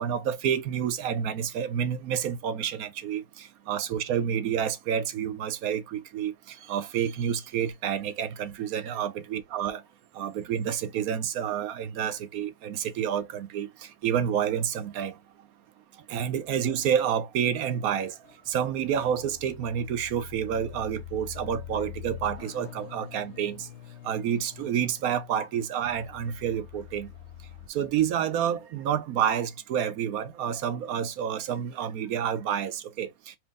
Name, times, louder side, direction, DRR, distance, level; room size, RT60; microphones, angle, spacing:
voice 1, 0.0-6.3 6.7-9.8 10.2-13.7 14.0-15.1 16.1-18.1 18.5-23.7 24.0-27.1 27.7-33.1, right 9 dB, 75° right, 1.0 m, -29 dB
sound 1, 18.2-27.7, left 11 dB, 60° left, 0.8 m, -45 dB
4.5 x 2.9 x 3.5 m
omnidirectional pair, 1.6 m